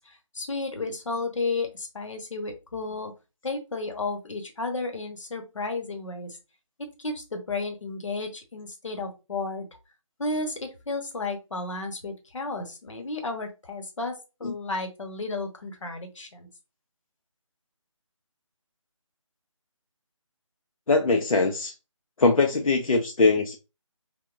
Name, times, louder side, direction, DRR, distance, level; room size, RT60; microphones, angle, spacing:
voice 1, 0.0-3.1 3.4-6.4 7.0-9.7 10.2-16.5, left 3 dB, 65° left, 4 dB, 1.0 m, -33 dB
voice 2, 20.9-21.7 22.2-23.6, left 3 dB, 90° left, 3 dB, 0.6 m, -22 dB
3.5 x 2.2 x 2.4 m, 0.28 s
figure-of-eight pair, 165°, 17 cm